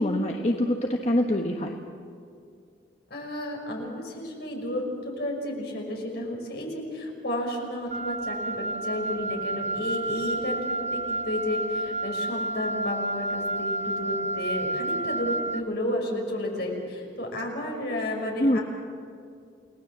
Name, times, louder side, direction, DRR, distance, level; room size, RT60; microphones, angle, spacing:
voice 1, 0.0-1.8 18.4-18.6, left 1 dB, 35° left, 2 dB, 1.3 m, -24 dB
voice 2, 3.1-10.6 10.9-18.6, left 1 dB, 60° left, 0 dB, 5.8 m, -32 dB
Wind instrument woodwind instrument, 7.9-15.7, right 2 dB, 35° right, 0.5 m, -30 dB
29.5 x 19.0 x 7.5 m, 2.3 s
head